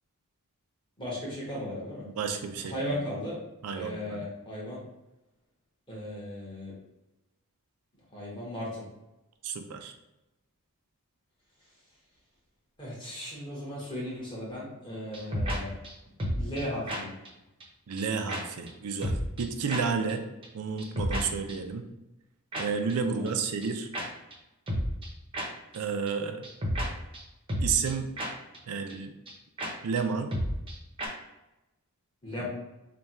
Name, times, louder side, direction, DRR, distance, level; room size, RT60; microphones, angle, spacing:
voice 1, 1.0-2.0 2.6-3.4 3.7-4.8 5.9-6.7 8.1-8.8 12.8-15.7 16.3-17.1 23.1-23.4 32.2-32.5, left 1 dB, 20° left, -6 dB, 1.3 m, -36 dB
voice 2, 2.2-3.0 3.6-4.2 9.4-9.9 17.9-20.2 20.5-21.9 22.6-23.9 25.7-26.4 27.6-28.1 28.7-29.1 29.8-30.4 32.4-32.5, right 5 dB, 85° right, 6 dB, 0.4 m, -31 dB
sound 1, 15.1-15.6 15.8-15.9 16.2-16.6 16.9-17.0 17.2-17.3 17.6-17.7 18.0-18.1 18.3-18.4 18.7-18.8 19.0-19.4 19.7-19.8 20.1-20.2 20.4-20.5 20.8-21.2 21.5-21.6 22.5-22.6 22.9-23.0 23.3-23.4 23.6-23.7 23.9-24.1 24.3-24.4 24.7-25.1 25.3-25.5 25.7-25.8 26.1-26.2 26.4-26.9 27.1-27.2 27.5-27.9 28.2-28.3 28.5-28.6 28.9-29.0 29.3-29.4 29.6-29.7 30.0-30.1 30.3-30.7 31.0-31.1, equal, 25° right, 0.7 m, -31 dB
3.3 x 2.3 x 4.1 m, 0.96 s
head